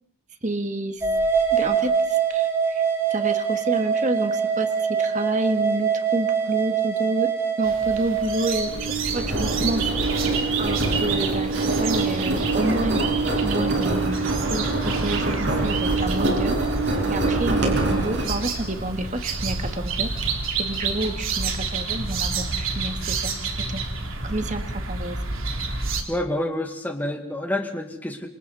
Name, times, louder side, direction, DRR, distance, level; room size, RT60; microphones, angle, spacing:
voice 1, 0.4-1.0 1.5-2.8 3.1-7.3 7.6-8.7 9.1-9.9 10.6-13.0 13.4-14.7 15.0-16.6 17.1-20.2 20.6-23.8 24.2-25.2, right 1 dB, 35° right, 7 dB, 2.0 m, -29 dB
sound 1, 1.0-8.7, right 6 dB, 15° right, 6.4 m, -23 dB
sound 2, 7.6-26.0, right 4 dB, 75° right, 3.2 m, -30 dB
Engine, 8.5-20.2, right 2 dB, 55° right, 6.2 m, -25 dB
voice 2, 26.1-28.3, left 1 dB, 10° left, 3 dB, 2.2 m, -28 dB
28.5 x 26.5 x 4.3 m, 0.70 s
head